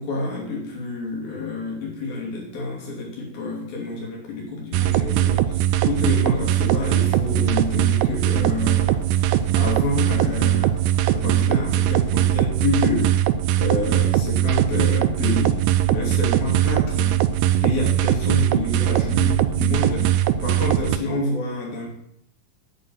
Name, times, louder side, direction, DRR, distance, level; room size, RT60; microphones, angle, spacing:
voice 1, 0.0-10.9 11.1-13.2 13.6-17.2 17.6-21.9, left 2 dB, 80° left, -2 dB, 4.7 m, -28 dB
sound 1, 4.7-21.0, right 12 dB, 80° right, 2.0 m, -20 dB
sound 2, 6.0-11.0, equal, 30° left, 1.2 m, -43 dB
9.3 x 8.8 x 5.7 m, 0.76 s
omnidirectional pair, 4.2 m